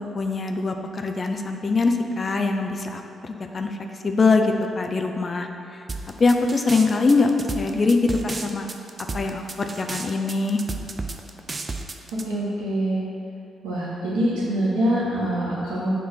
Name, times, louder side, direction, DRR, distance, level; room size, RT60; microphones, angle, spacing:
voice 1, 0.0-3.8 4.0-5.5 6.2-8.7 9.1-10.6, left 3 dB, 40° left, 4 dB, 0.5 m, -23 dB
sound 1, 5.9-12.2, right 3 dB, 40° right, 0.5 m, -33 dB
voice 2, 12.3-13.0 13.6-15.9, right 1 dB, 80° right, -7 dB, 1.4 m, -24 dB
6.0 x 3.1 x 5.5 m, 2.6 s
hypercardioid pair, 40°, 0 cm